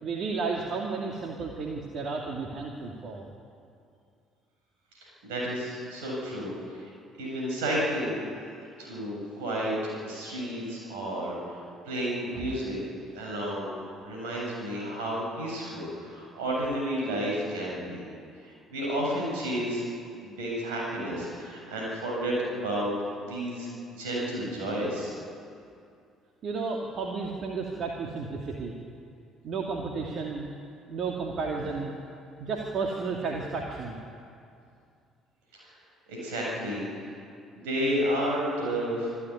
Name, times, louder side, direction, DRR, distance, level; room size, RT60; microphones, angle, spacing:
voice 1, 0.0-3.2 12.3-12.5 26.4-28.7 29.4-30.5 30.9-31.9 32.4-34.0, right 4 dB, 50° right, 0 dB, 2.5 m, -32 dB
voice 2, 5.0-6.9 7.2-8.2 8.8-12.8 13.1-13.7 14.0-18.0 18.7-19.8 20.2-23.7 24.0-25.1 35.5-35.7 36.1-36.8 37.6-39.2, equal, 70° right, -3 dB, 7.7 m, -31 dB
26.5 x 12.5 x 9.7 m, 2.5 s
figure-of-eight pair, 50°, 0 cm